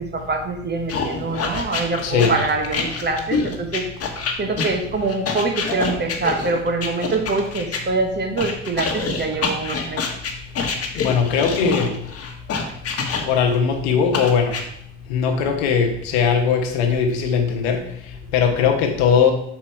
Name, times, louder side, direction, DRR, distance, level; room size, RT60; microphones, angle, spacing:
voice 1, 0.0-3.8 4.4-10.0, right 3 dB, 35° right, 4 dB, 1.3 m, -24 dB
sound 1, 0.9-7.8 8.4-13.6 14.1-14.6, left 5 dB, 50° left, 1.4 m, -26 dB
voice 2, 2.0-2.4 10.0-10.1 10.7-12.0 13.2-14.6 15.0-19.3, left 6 dB, 90° left, 4 dB, 1.1 m, -20 dB
5.9 x 4.7 x 4.4 m, 0.73 s
supercardioid pair, 70°, 31 cm